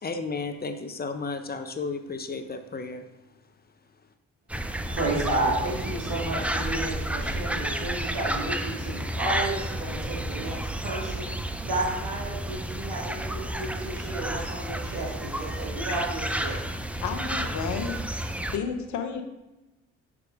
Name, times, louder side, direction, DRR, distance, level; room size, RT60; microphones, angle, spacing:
voice 1, 0.0-3.1, left 4 dB, 30° left, 8 dB, 0.8 m, -33 dB
sound 1, 4.5-18.6, right 1 dB, 5° right, 0.5 m, -31 dB
voice 2, 4.9-10.6 10.8-16.6, right 2 dB, 85° right, -5 dB, 1.8 m, -32 dB
voice 3, 17.0-18.2 18.5-19.2, left 6 dB, 65° left, 6 dB, 0.9 m, -32 dB
6.0 x 4.9 x 3.5 m, 1.0 s
hypercardioid pair, 55°, 31 cm